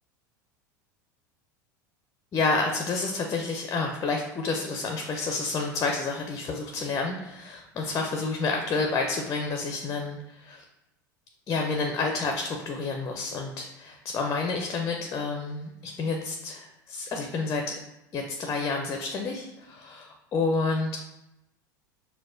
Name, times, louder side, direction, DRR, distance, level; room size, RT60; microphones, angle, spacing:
voice 1, 2.3-10.6 11.5-17.8 18.1-21.0, left 3 dB, 30° left, 2 dB, 0.5 m, -29 dB
4.6 x 2.1 x 2.6 m, 0.91 s
hypercardioid pair, 85°, 11 cm